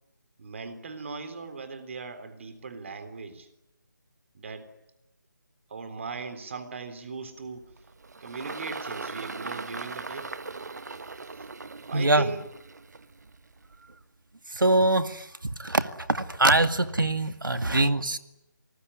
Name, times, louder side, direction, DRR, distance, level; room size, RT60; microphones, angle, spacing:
voice 1, 0.4-3.5 4.3-4.7 5.7-7.7 8.2-10.3 11.4-11.5 11.9-12.4, right 4 dB, 40° right, 10 dB, 3.6 m, -38 dB
Engine, 7.4-14.0, right 4 dB, 55° right, 1.3 m, -40 dB
voice 2, 11.9-12.3 14.5-15.3 15.6-18.2, right 2 dB, 80° right, 10 dB, 2.2 m, -23 dB
27.5 x 20.0 x 9.9 m, 0.91 s
figure-of-eight pair, 160°, 11 cm